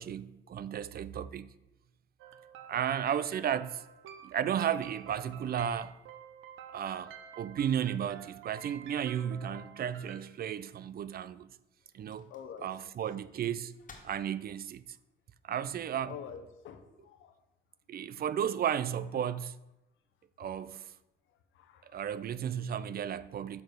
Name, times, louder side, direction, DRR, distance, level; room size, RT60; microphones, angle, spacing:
voice 1, 0.0-1.5 2.7-3.8 4.2-6.0 6.7-11.5 11.9-12.3 12.6-13.7 14.0-14.8 15.4-16.2 17.9-19.6 20.4-20.9 21.8-23.6, right 9 dB, 50° right, 0.4 m, -34 dB
sound 1, 2.2-10.2, right 8 dB, 85° right, 0.7 m, -50 dB
sound 2, 10.3-16.4, left 4 dB, 40° left, 1.5 m, -62 dB
voice 2, 12.3-12.7 16.1-17.3 21.5-22.0, left 8 dB, 80° left, 1.0 m, -47 dB
6.7 x 4.2 x 6.6 m
cardioid pair, 90°, 20 cm